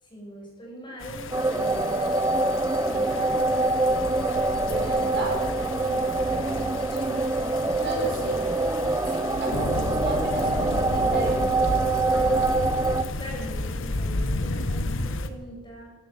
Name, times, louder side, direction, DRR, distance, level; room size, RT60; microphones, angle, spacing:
voice 1, 0.0-2.2 2.8-4.1 5.5-7.8 12.1-12.5 13.2-16.0, right 1 dB, 25° left, -2 dB, 6.1 m, -42 dB
sound 1, 1.0-15.3, left 2 dB, 65° left, 1.1 m, -32 dB
sound 2, 1.3-13.0, right 2 dB, 15° right, 0.7 m, -25 dB
voice 2, 4.6-5.4 7.8-8.5 9.1-11.5, right 2 dB, 55° right, 1 dB, 4.2 m, -33 dB
13.0 x 12.5 x 7.8 m, 1.2 s
head